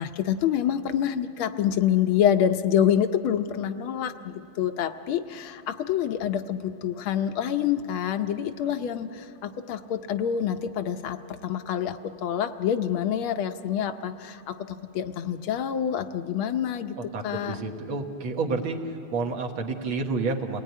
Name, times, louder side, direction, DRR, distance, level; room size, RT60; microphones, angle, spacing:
voice 1, 0.0-17.0 17.2-17.6, left 9 dB, 75° left, 8 dB, 1.6 m, -27 dB
voice 2, 17.0-18.8 19.1-20.6, right 4 dB, 75° right, 3 dB, 2.3 m, -29 dB
28.0 x 18.0 x 9.3 m, 3.0 s
omnidirectional pair, 2.4 m